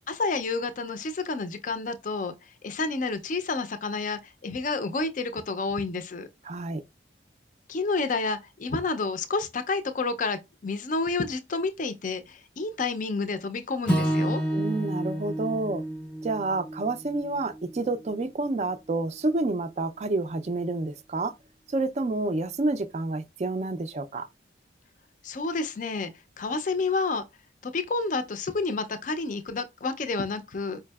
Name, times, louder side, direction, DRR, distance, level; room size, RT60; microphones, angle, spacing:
voice 1, 0.1-2.3 2.6-6.3 7.7-14.4 25.2-26.1 26.4-27.2 27.6-30.8, left 3 dB, 40° left, 0.4 m, -29 dB
voice 2, 6.4-6.8 14.5-15.8 16.2-21.3 21.7-24.3, right 2 dB, 35° right, 0.3 m, -29 dB
Acoustic guitar / Strum, 13.8-18.2, equal, 5° left, 0.7 m, -30 dB
4.7 x 2.6 x 2.3 m
head